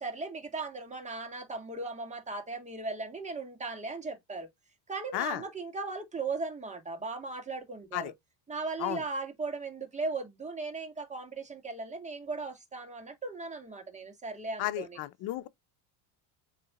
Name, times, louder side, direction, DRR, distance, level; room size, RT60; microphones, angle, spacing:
voice 1, 0.0-4.5 4.9-8.1 8.5-15.0, right 3 dB, 15° right, 2.0 m, -37 dB
voice 2, 14.6-15.5, left 16 dB, 60° left, 0.9 m, -33 dB
7.7 x 3.3 x 4.2 m
supercardioid pair, 110°, 44 cm